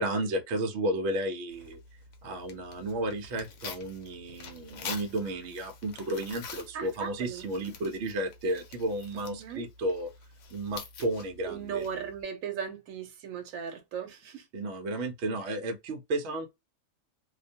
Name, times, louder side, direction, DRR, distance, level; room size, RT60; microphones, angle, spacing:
voice 1, 0.0-1.8 2.2-10.1 10.5-11.8 14.5-16.5, right 1 dB, 65° right, 0.8 m, -33 dB
Tearing, 1.5-12.2, left 5 dB, 70° left, 0.9 m, -47 dB
voice 2, 6.7-7.5 9.1-9.6 11.5-14.4, right 7 dB, 85° right, 1.1 m, -37 dB
2.4 x 2.1 x 2.6 m
omnidirectional pair, 1.4 m